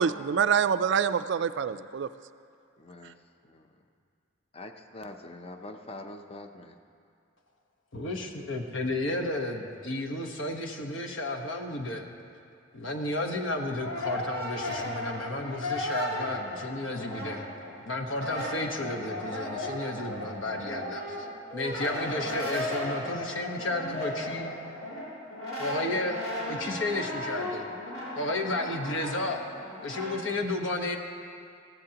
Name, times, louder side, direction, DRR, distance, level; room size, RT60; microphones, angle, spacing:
voice 1, 0.0-2.1, right 7 dB, 60° right, 13 dB, 0.3 m, -26 dB
voice 2, 2.8-3.7 4.5-6.8, left 2 dB, 30° left, 6 dB, 0.6 m, -44 dB
voice 3, 7.9-12.0 12.7-17.5 17.8-21.3 21.5-24.5 25.6-27.7 28.1-29.4 29.8-31.0, left 2 dB, 70° left, 3 dB, 1.2 m, -32 dB
Brass instrument, 13.3-17.7 18.0-30.2, left 1 dB, 85° left, 3.8 m, -36 dB
20.5 x 15.0 x 2.9 m, 2.4 s
head